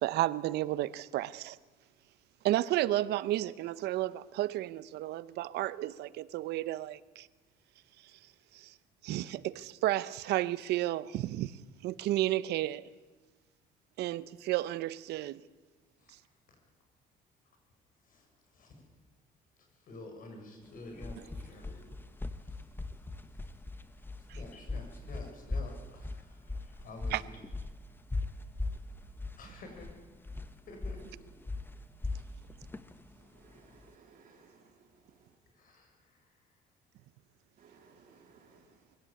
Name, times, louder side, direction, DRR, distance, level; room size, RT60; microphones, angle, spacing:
voice 1, 0.0-1.6 2.4-7.3 8.5-8.7 9.0-11.5 11.8-12.8 14.0-15.4 27.1-27.2, right 15 dB, 80° right, 0.8 m, -32 dB
voice 2, 18.0-18.9 19.6-21.9 22.2-22.7 23.0-23.8 24.1-27.3 29.4-30.0 30.7-31.2 35.5-36.6, left 2 dB, 55° left, 7.0 m, -50 dB
sound 1, 20.7-33.9, left 2 dB, 10° left, 1.2 m, -40 dB
voice 3, 33.3-34.7 35.1-35.2 37.6-38.7, right 5 dB, 50° right, 3.3 m, -60 dB
23.0 x 16.5 x 8.7 m
cardioid pair, 110°, 17 cm